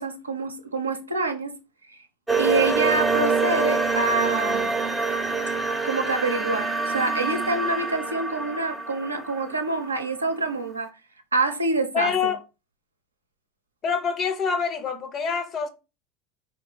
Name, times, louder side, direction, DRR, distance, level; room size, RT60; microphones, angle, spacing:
voice 1, 0.0-1.5 1.9-2.0 2.4-4.8 5.8-10.9 11.3-12.3, right 3 dB, 85° right, 0.6 m, -26 dB
sound 1, 2.3-10.3, right 4 dB, 5° right, 0.6 m, -26 dB
voice 2, 11.9-12.4 13.8-15.7, left 6 dB, 35° left, 0.7 m, -26 dB
4.4 x 2.4 x 3.9 m
figure-of-eight pair, 75°, 0 cm